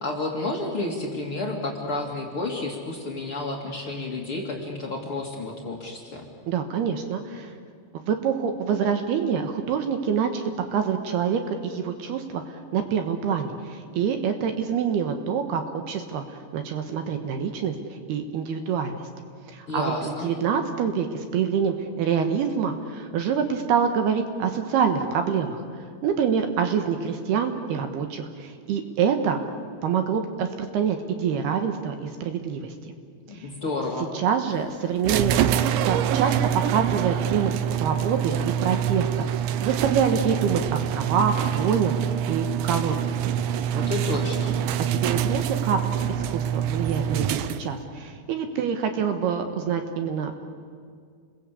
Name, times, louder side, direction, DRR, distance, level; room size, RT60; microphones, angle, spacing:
voice 1, 0.0-6.3 19.7-20.3 33.3-34.1 43.7-44.5, left 2 dB, 35° left, 0 dB, 2.6 m, -30 dB
voice 2, 6.5-7.5 8.1-19.0 19.5-25.6 26.0-29.4 29.8-32.7 33.3-33.5 34.1-36.3 36.7-37.5 37.8-42.0 42.3-43.2 44.9-45.8 46.1-50.4, right 7 dB, 65° right, 6 dB, 3.0 m, -26 dB
sound 1, 35.0-47.8, right 9 dB, 90° right, 2.1 m, -25 dB
29.5 x 21.5 x 8.5 m, 2.1 s
omnidirectional pair, 5.3 m